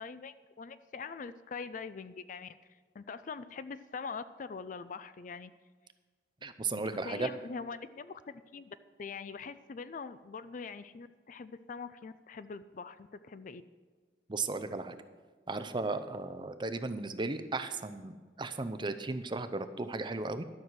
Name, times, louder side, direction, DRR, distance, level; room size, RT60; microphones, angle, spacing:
voice 1, 0.0-2.6 2.9-5.6 6.4-13.6, left 5 dB, 45° left, 13 dB, 0.4 m, -43 dB
voice 2, 6.4-7.3 14.3-14.9 15.5-20.4, right 3 dB, 25° right, 10 dB, 0.6 m, -35 dB
12.0 x 6.3 x 7.4 m, 1.4 s
head